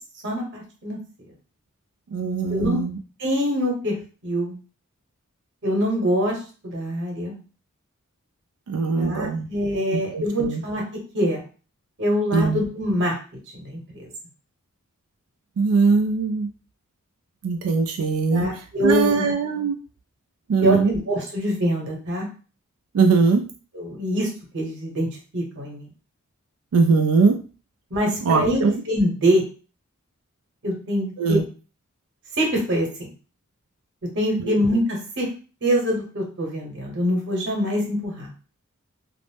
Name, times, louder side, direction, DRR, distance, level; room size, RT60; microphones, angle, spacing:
voice 1, 0.2-1.0 2.5-2.8 3.2-3.9 4.2-4.6 5.6-6.4 6.6-7.4 9.0-10.8 11.1-11.4 12.0-13.2 13.5-14.1 18.3-19.3 20.6-22.3 23.7-25.1 25.3-25.9 27.9-29.4 30.6-31.4 32.4-32.9 34.1-35.3 35.6-38.3, equal, 60° right, 0 dB, 1.0 m, -24 dB
voice 2, 2.1-3.0 8.7-9.5 9.9-10.6 12.3-12.6 15.6-16.5 17.4-18.5 18.8-19.8 20.5-21.0 22.9-23.5 26.7-27.4 28.2-28.7 31.2-31.4 34.5-34.6, right 4 dB, 85° right, 4 dB, 0.4 m, -21 dB
2.5 x 2.0 x 3.3 m, 0.36 s
head